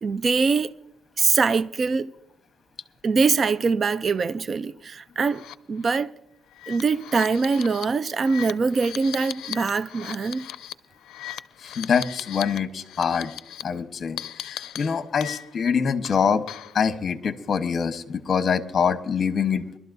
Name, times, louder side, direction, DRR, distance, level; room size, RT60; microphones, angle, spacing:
voice 1, 0.0-0.7 1.2-2.1 3.0-5.4 5.7-6.1 6.7-10.5, right 4 dB, 45° right, 0.5 m, -23 dB
sound 1, 5.3-5.6 5.9-6.0 6.5-12.6 12.9-13.6 14.2-15.7 16.0-16.8, left 12 dB, 80° left, 0.5 m, -38 dB
voice 2, 11.6-13.3 13.6-16.4 16.7-19.7, left 6 dB, 45° left, 1.1 m, -24 dB
24.0 x 12.5 x 2.7 m
cardioid pair, 90°, 0 cm